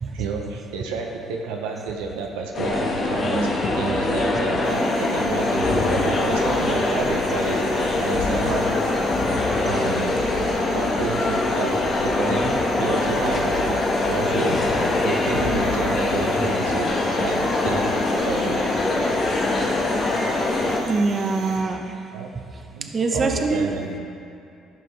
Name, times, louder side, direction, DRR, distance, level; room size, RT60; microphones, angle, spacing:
voice 1, 0.1-7.6 7.9-8.8 9.6-10.2 10.7-14.7 15.0-18.0 18.2-18.7 22.1-22.3 22.7-24.0, right 5 dB, 85° right, 1 dB, 0.7 m, -30 dB
sound 1, 2.5-20.8, left 2 dB, 50° left, 1.3 m, -23 dB
sound 2, 4.6-21.6, right 2 dB, 70° right, 1.5 m, -38 dB
voice 2, 20.8-21.9 22.9-23.7, right 3 dB, 40° right, 4 dB, 0.8 m, -24 dB
12.0 x 5.4 x 3.3 m, 2.5 s
supercardioid pair, 65°, 0 cm